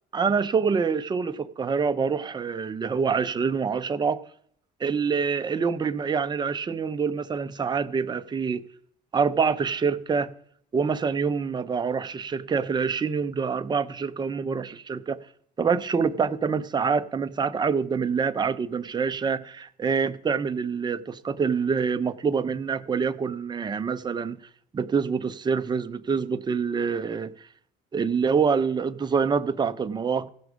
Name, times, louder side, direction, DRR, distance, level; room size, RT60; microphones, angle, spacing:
voice 1, 0.1-4.2 4.8-8.6 9.1-10.3 10.7-15.2 15.6-24.4 24.7-27.3 27.9-30.3, right 5 dB, 25° right, 0.6 m, -26 dB
16.0 x 6.1 x 5.1 m
cardioid pair, 110°, 17 cm